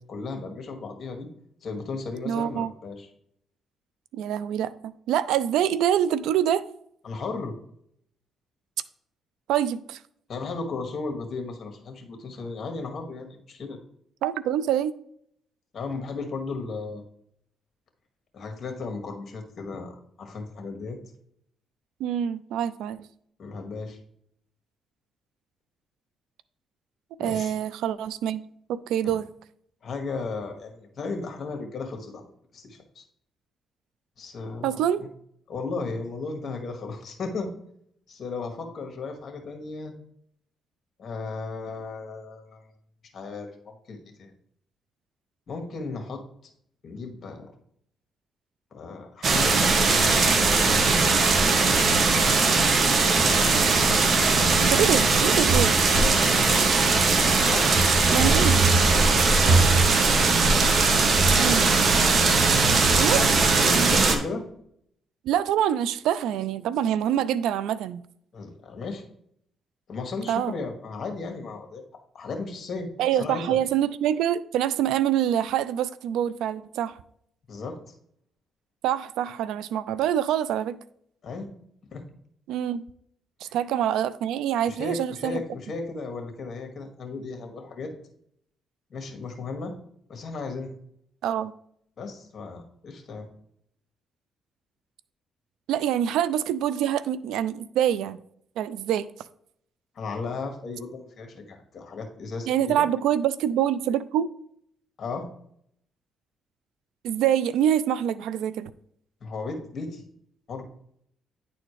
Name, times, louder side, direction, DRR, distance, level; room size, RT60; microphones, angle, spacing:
voice 1, 0.1-1.3 1.6-3.1 7.0-7.5 10.3-13.8 15.7-17.0 18.3-21.0 23.4-24.0 27.2-27.5 29.0-29.2 29.8-32.3 32.5-33.0 34.2-34.8 35.5-37.5 38.1-39.9 41.0-42.7 43.1-44.3 45.5-46.2 46.8-47.5 48.7-50.6 51.3-51.7 55.9-56.6 57.5-58.5 59.2-60.2 63.1-64.5 68.3-69.0 69.9-71.8 72.1-73.6 77.5-77.8 81.2-81.5 81.9-82.0 83.5-83.6 84.6-87.9 88.9-89.7 90.1-90.7 92.0-93.3 100.0-102.8 105.0-105.3 109.2-110.0 110.5-110.7, left 3 dB, 50° left, 1.7 m, -35 dB
voice 2, 2.3-2.7 4.1-6.6 9.5-10.0 14.2-14.9 22.0-23.1 27.2-28.4 28.7-29.3 34.6-35.0 54.7-55.7 58.1-58.6 61.4-61.8 63.0-63.2 63.8-63.9 65.2-68.0 70.3-70.5 73.0-77.0 78.8-80.8 82.5-82.8 83.4-85.4 91.2-91.5 95.7-98.2 98.6-99.1 102.5-104.3 107.0-108.7, right 10 dB, 85° right, 0.3 m, -25 dB
sound 1, 49.2-64.2, right 3 dB, 50° right, 1.1 m, -20 dB
9.8 x 4.2 x 3.2 m
cardioid pair, 90°, 0 cm